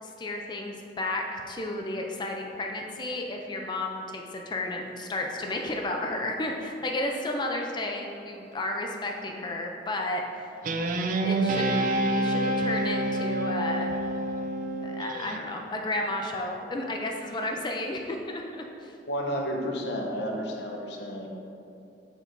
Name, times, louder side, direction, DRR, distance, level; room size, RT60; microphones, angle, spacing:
voice 1, 0.0-10.5 11.2-11.9 12.1-13.9 14.8-18.9, left 1 dB, 25° left, 2 dB, 0.4 m, -32 dB
Guitar, 10.6-15.4, right 1 dB, 50° right, 0.4 m, -27 dB
voice 2, 19.1-21.3, equal, 75° left, 1 dB, 0.7 m, -31 dB
7.9 x 4.5 x 2.6 m, 2.7 s
head